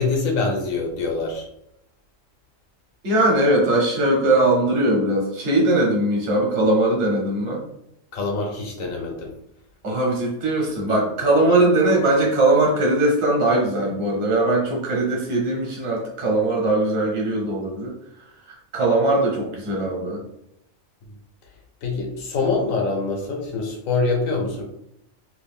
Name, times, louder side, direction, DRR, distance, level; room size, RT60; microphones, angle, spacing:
voice 1, 0.0-1.4 8.1-9.3 21.8-24.6, left 3 dB, 90° left, 1 dB, 1.2 m, -24 dB
voice 2, 3.0-7.6 9.8-18.0 18.5-20.2, right 2 dB, 50° right, -1 dB, 1.1 m, -20 dB
3.0 x 2.6 x 3.5 m, 0.79 s
omnidirectional pair, 1.3 m